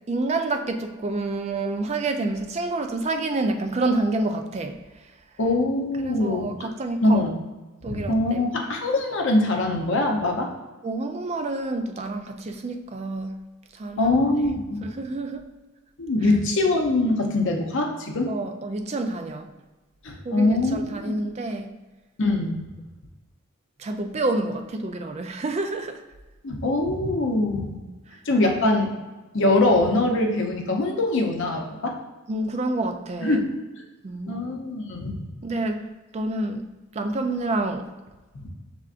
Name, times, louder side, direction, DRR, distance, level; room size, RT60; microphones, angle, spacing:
voice 1, 0.1-4.8 6.0-7.2 7.8-8.4 10.8-13.4 13.7-14.2 14.8-15.4 18.3-19.5 20.2-21.7 23.8-26.0 32.3-33.4 34.0-34.4 35.4-35.9 36.1-36.7 36.9-37.9, right 2 dB, 30° right, 6 dB, 0.4 m, -28 dB
voice 2, 5.4-6.7 7.0-7.3 7.9-10.5 14.0-14.8 16.0-18.3 20.0-21.2 22.2-22.6 26.4-27.8 28.3-28.9 29.3-31.9 33.2-33.6 34.3-35.2 38.3-38.5, left 2 dB, 60° left, 2 dB, 0.7 m, -23 dB
5.6 x 3.5 x 2.5 m, 1.2 s
head